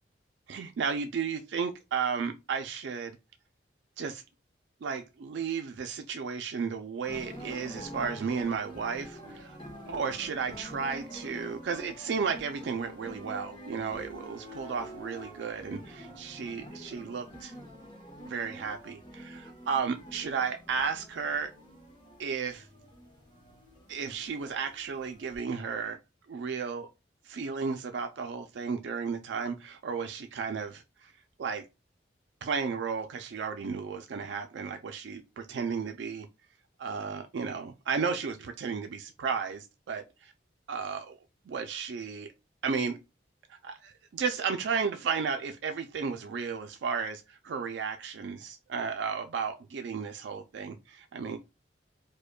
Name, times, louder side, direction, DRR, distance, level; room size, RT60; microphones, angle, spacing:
voice 1, 0.5-3.2 4.0-4.2 4.8-9.6 9.9-17.5 18.3-21.5 22.2-22.7 23.9-26.0 26.3-26.9 27.2-31.1 31.4-31.7 32.4-36.3 36.8-40.0 40.7-41.2 41.5-42.3 42.6-43.0 43.5-51.4, right 5 dB, 75° right, 0.4 m, -33 dB
sound 1, 7.0-25.4, equal, 25° left, 0.8 m, -47 dB
5.0 x 2.1 x 2.2 m
head